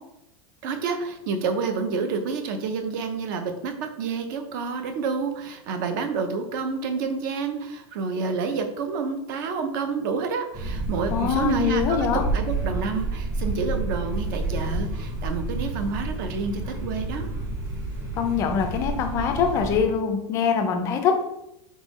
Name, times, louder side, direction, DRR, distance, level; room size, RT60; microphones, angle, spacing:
voice 1, 0.6-17.3, right 4 dB, 40° right, 6 dB, 0.5 m, -29 dB
sound 1, 10.5-19.8, right 2 dB, 25° right, 0.9 m, -30 dB
voice 2, 11.1-12.2 18.2-21.1, left 6 dB, 20° left, 5 dB, 0.4 m, -23 dB
4.0 x 3.7 x 3.0 m, 0.82 s
supercardioid pair, 180°, 15 cm